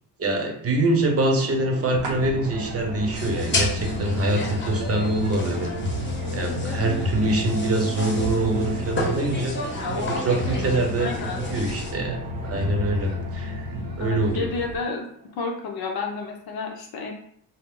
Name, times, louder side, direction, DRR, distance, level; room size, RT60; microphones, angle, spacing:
voice 1, 0.2-5.7 6.3-9.6 10.0-11.1 11.4-12.2 12.4-13.7 14.0-14.5, right 2 dB, 35° right, 2 dB, 0.8 m, -24 dB
sound 1, 1.0-15.7, right 3 dB, 20° right, 0.4 m, -40 dB
sound 2, 1.9-14.8, left 1 dB, 75° right, 0.8 m, -32 dB
sound 3, 3.1-11.9, left 2 dB, 30° left, 0.7 m, -32 dB
voice 2, 11.0-11.4 14.0-15.1 15.4-17.1, left 4 dB, 65° left, 2 dB, 0.8 m, -30 dB
2.1 x 2.1 x 3.6 m, 0.65 s
supercardioid pair, 60°, 41 cm